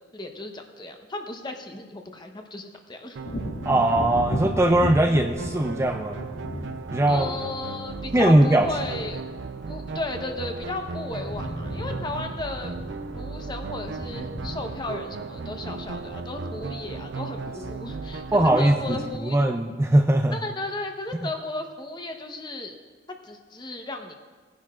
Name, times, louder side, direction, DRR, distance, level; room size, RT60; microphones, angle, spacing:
voice 1, 0.1-3.2 7.1-9.2 9.7-12.7 13.1-19.4 20.3-22.7 23.2-24.1, left 2 dB, 25° left, 4 dB, 0.9 m, -35 dB
Wind / Thunder, 3.2-10.8 11.1-18.3 18.7-18.9, equal, 90° left, 2.2 m, -37 dB
sound 1, 3.2-19.2, right 3 dB, 70° right, 0.5 m, -36 dB
voice 2, 3.7-6.3 6.9-7.3 8.1-8.7 18.3-19.0 19.2-20.4, right 1 dB, 15° right, 3 dB, 0.4 m, -20 dB
18.5 x 10.0 x 2.4 m, 1.5 s
head